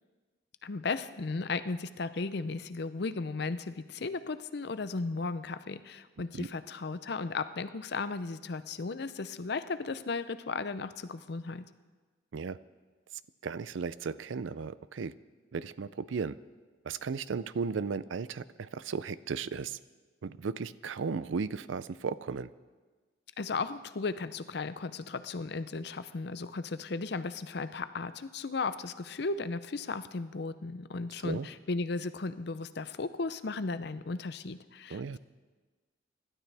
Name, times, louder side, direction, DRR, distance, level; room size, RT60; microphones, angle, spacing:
voice 1, 0.6-11.6 23.4-35.2, left 3 dB, 60° left, 12 dB, 0.6 m, -35 dB
voice 2, 13.4-15.1 15.5-16.4 16.8-19.8 20.2-22.5 31.2-31.5 34.9-35.2, right 5 dB, 80° right, 17 dB, 0.5 m, -35 dB
25.0 x 12.0 x 3.4 m, 1.4 s
head